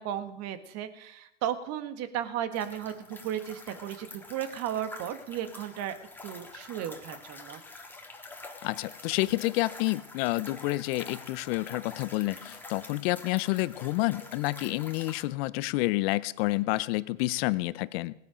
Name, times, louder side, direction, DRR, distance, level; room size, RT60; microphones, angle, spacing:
voice 1, 0.0-7.6, right 10 dB, 40° right, 10 dB, 1.6 m, -35 dB
sound 1, 2.5-15.2, left 2 dB, 5° left, 1.7 m, -47 dB
voice 2, 8.6-18.1, left 20 dB, 50° left, 18 dB, 0.7 m, -29 dB
19.0 x 10.0 x 5.1 m, 0.83 s
hypercardioid pair, 110°, 39 cm